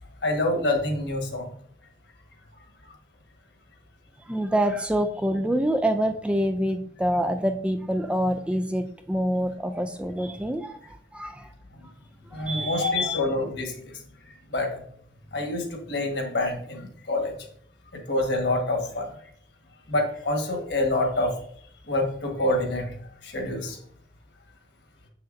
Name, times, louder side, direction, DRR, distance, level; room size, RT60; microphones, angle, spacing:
voice 1, 0.2-1.5 12.3-14.8 15.3-17.3 17.9-19.1 19.9-21.3 21.9-22.9 23.2-23.8, left 2 dB, 70° left, 3 dB, 1.4 m, -27 dB
voice 2, 4.3-11.5 12.3-12.9, equal, 5° right, 7 dB, 0.3 m, -26 dB
6.9 x 6.4 x 2.6 m, 0.62 s
head